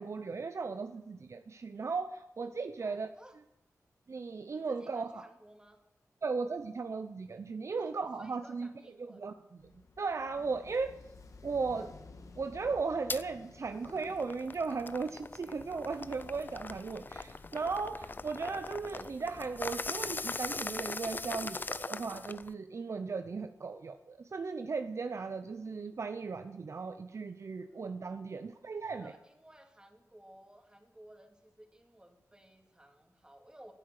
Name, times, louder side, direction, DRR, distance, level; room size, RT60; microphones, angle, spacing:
voice 1, 0.0-3.1 4.1-5.2 6.2-8.7 9.0-9.7 10.0-10.9 11.4-11.9 12.4-29.1, right 4 dB, 55° right, 9 dB, 0.7 m, -36 dB
voice 2, 2.8-3.4 4.5-5.8 7.8-7.9 8.2-9.2 27.6-27.9 28.8-33.7, right 1 dB, 15° right, 4 dB, 2.6 m, -57 dB
sound 1, 9.6-20.2, left 3 dB, 65° left, 1.8 m, -55 dB
sound 2, 13.1-13.2 13.7-22.5, left 3 dB, 35° left, 0.5 m, -40 dB
18.5 x 9.9 x 6.6 m, 0.89 s
wide cardioid pair, 80°, 6 cm